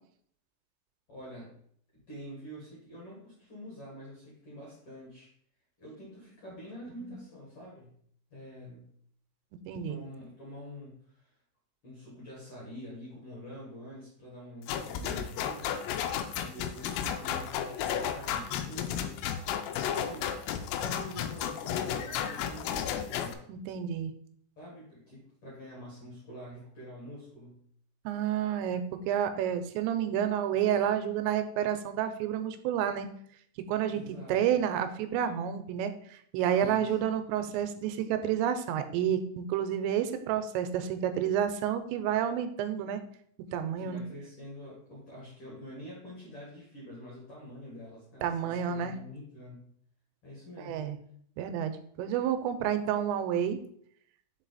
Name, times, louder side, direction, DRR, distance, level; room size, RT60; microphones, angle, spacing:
voice 1, 1.1-1.5 2.1-5.3 5.8-7.9 8.3-8.9 9.8-11.3 11.8-15.7 16.3-19.3 19.9-23.4 24.6-27.6 33.9-34.4 36.6-37.0 43.7-49.7 50.2-50.9, equal, 50° left, -5 dB, 1.8 m, -46 dB
voice 2, 9.7-10.0 23.5-24.1 28.1-33.1 33.7-34.0 34.3-43.0 43.5-44.0 48.2-48.9 50.7-51.0 51.4-53.6, right 9 dB, 90° right, 9 dB, 2.8 m, -30 dB
sound 1, 14.7-23.3, left 9 dB, 85° left, 2.8 m, -33 dB
6.1 x 4.5 x 4.0 m, 0.65 s
omnidirectional pair, 5.0 m